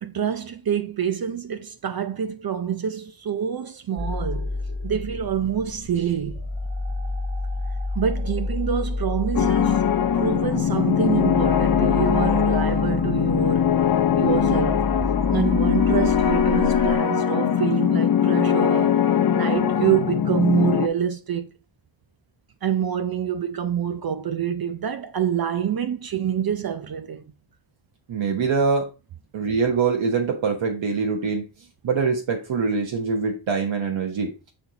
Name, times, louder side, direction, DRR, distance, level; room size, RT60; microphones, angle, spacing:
voice 1, 0.0-4.5 4.8-6.4 8.0-9.9 10.1-13.8 14.1-14.9 15.3-19.0 19.3-21.5 22.6-27.3, right 9 dB, 50° right, 0.6 m, -26 dB
sound 1, 4.0-17.0, left 2 dB, 15° right, 1.3 m, -30 dB
sound 2, 9.3-20.9, left 8 dB, 45° left, 0.6 m, -21 dB
voice 2, 28.1-28.9 29.3-31.5 31.8-34.3, right 5 dB, 70° right, 1.2 m, -24 dB
6.8 x 4.4 x 3.9 m
wide cardioid pair, 160°, 49 cm